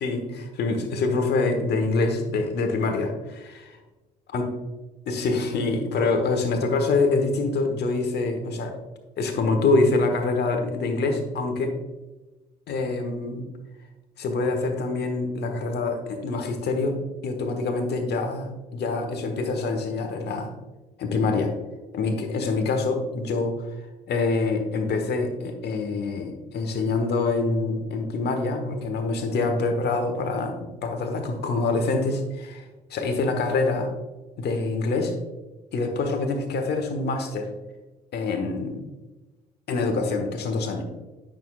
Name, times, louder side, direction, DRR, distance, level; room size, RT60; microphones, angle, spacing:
voice 1, 0.0-3.8 4.3-4.5 5.1-8.7 9.2-11.7 12.7-13.4 14.2-16.9 17.2-20.5 21.0-21.5 21.9-23.7 24.1-32.6 32.9-33.9 34.4-35.1 35.7-37.5 38.1-38.8 39.7-40.8, left 3 dB, 55° left, 5 dB, 1.3 m, -25 dB
8.9 x 6.4 x 2.4 m, 1.1 s
hypercardioid pair, 50°, 20 cm